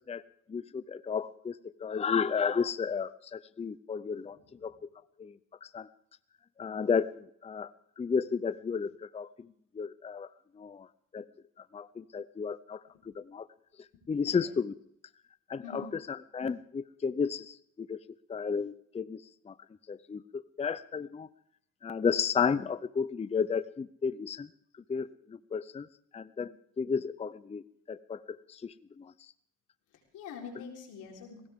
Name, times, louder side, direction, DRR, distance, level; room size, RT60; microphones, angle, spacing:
voice 1, 0.5-4.7 5.2-5.9 6.6-7.7 8.0-10.3 10.6-10.9 11.1-11.2 11.7-12.8 13.1-13.5 14.1-14.7 15.5-15.8 16.3-18.0 18.3-19.5 19.9-21.3 21.8-24.5 24.9-25.9 26.1-27.6 27.9-29.1, left 6 dB, 20° left, 16 dB, 0.5 m, -33 dB
voice 2, 4.3-4.7 12.9-13.1 13.9-14.5 15.6-15.9 29.9-31.5, left 5 dB, 90° left, 1 dB, 4.1 m, -46 dB
20.5 x 17.5 x 3.6 m, 0.67 s
cardioid pair, 90°, 30 cm